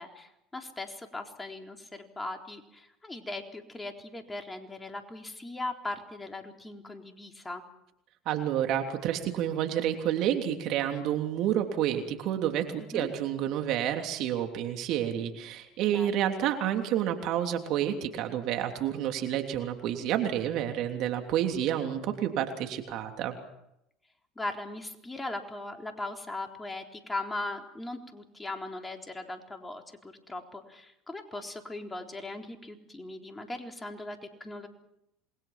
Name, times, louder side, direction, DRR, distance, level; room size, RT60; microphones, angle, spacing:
voice 1, 0.0-7.6 12.8-13.1 15.9-16.3 24.4-34.7, left 2 dB, 15° left, 3 dB, 3.8 m, -39 dB
voice 2, 8.2-23.4, right 10 dB, 60° right, 5 dB, 3.2 m, -29 dB
28.0 x 21.5 x 6.0 m, 0.81 s
hypercardioid pair, 80°, 0 cm